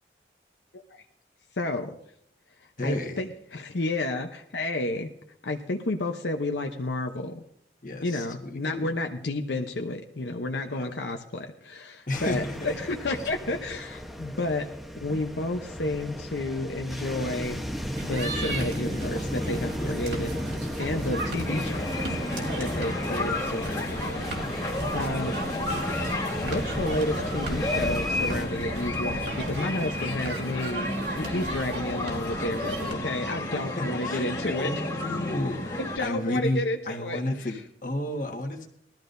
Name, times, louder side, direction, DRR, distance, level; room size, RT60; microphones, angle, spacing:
voice 1, 1.6-1.9 2.8-5.1 5.4-7.4 8.0-14.7 15.0-17.6 18.0-20.3 20.8-22.0 22.6-25.3 26.4-30.9 31.2-34.7 35.8-37.2, left 2 dB, 80° left, 3 dB, 0.9 m, -31 dB
voice 2, 2.8-3.2 7.8-8.9 10.7-10.9 12.1-12.8 19.8-20.0 21.0-21.3 22.6-22.9 24.9-25.1 33.8-38.7, left 1 dB, 45° left, 2 dB, 1.5 m, -32 dB
sound 1, 12.1-28.5, equal, ahead, 0.9 m, -34 dB
sound 2, 17.9-32.9, right 1 dB, 75° right, 2.6 m, -36 dB
sound 3, 21.4-36.0, left 1 dB, 20° left, 1.9 m, -32 dB
20.0 x 13.5 x 2.7 m, 0.71 s
head